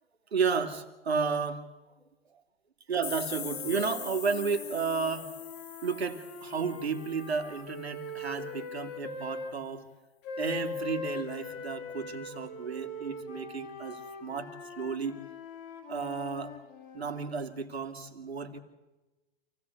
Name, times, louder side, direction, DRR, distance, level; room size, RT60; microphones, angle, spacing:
voice 1, 0.3-1.6 2.9-5.3 5.8-9.9 10.4-15.2 15.9-16.6 16.9-18.6, right 5 dB, 85° right, 6 dB, 2.9 m, -32 dB
sound 1, 3.0-7.7, left 7 dB, 85° left, 2.0 m, -42 dB
sound 2, 3.3-9.5 10.2-17.3, left 2 dB, 40° left, 4.3 m, -41 dB
27.0 x 17.5 x 8.5 m, 1.1 s
hypercardioid pair, 120°, 31 cm